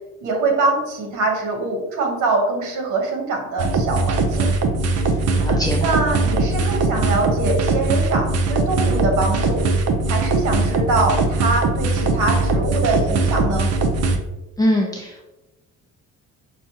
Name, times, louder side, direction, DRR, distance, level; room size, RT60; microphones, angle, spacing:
voice 1, 0.2-4.5 5.8-9.7 10.1-13.7, right 3 dB, 75° right, 2 dB, 1.0 m, -23 dB
sound 1, 3.6-14.2, right 3 dB, 55° right, 0.6 m, -20 dB
voice 2, 5.4-5.9 14.6-15.3, left 1 dB, 10° left, -1 dB, 0.5 m, -22 dB
5.8 x 2.2 x 2.8 m, 1.0 s
cardioid pair, 90°, 30 cm